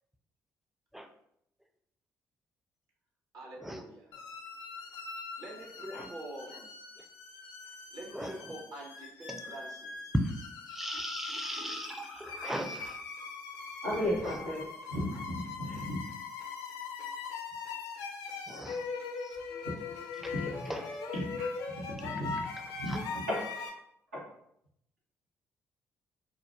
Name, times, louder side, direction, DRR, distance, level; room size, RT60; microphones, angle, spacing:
voice 1, 3.3-4.0 5.4-6.8 7.9-10.0, right 1 dB, 55° right, -2 dB, 0.8 m, -45 dB
sound 1, 4.1-23.7, left 5 dB, 70° left, 0.4 m, -41 dB
voice 2, 8.1-8.6 9.3-9.4 10.1-10.3 10.7-13.0 14.2-14.4 15.1-15.2 18.4-18.9 19.2-19.4 20.1-20.9 22.0-23.0, equal, 5° right, 5 dB, 0.4 m, -38 dB
voice 3, 13.8-16.0 19.6-19.7 20.3-20.5 21.1-21.5 21.7-22.4 22.8-23.4 24.1-24.2, equal, 90° right, -7 dB, 0.9 m, -35 dB
2.4 x 2.1 x 2.9 m, 0.73 s
hypercardioid pair, 45°, 8 cm